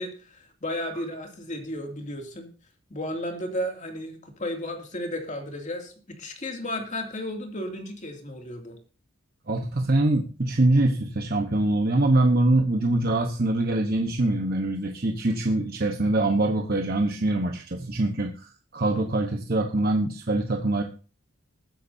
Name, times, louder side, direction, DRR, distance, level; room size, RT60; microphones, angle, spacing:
voice 1, 0.0-2.5 2.9-5.9 6.2-8.8, left 1 dB, 35° left, 3 dB, 2.6 m, -33 dB
voice 2, 9.5-20.8, right 2 dB, 50° right, 3 dB, 1.2 m, -24 dB
20.5 x 9.9 x 2.8 m, 0.36 s
head